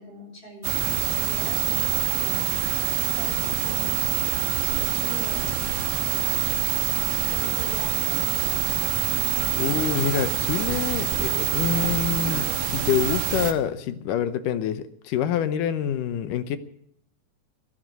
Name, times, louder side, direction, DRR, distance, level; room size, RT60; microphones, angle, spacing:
voice 1, 0.0-2.7 3.1-4.0 4.6-5.4 6.0-6.7 7.3-8.6, equal, 15° left, 1 dB, 5.3 m, -42 dB
sound 1, 0.6-13.5, right 12 dB, 80° right, 2.8 m, -25 dB
voice 2, 9.6-16.6, left 9 dB, 80° left, 11 dB, 2.5 m, -26 dB
14.5 x 13.0 x 6.5 m, 0.71 s
omnidirectional pair, 3.8 m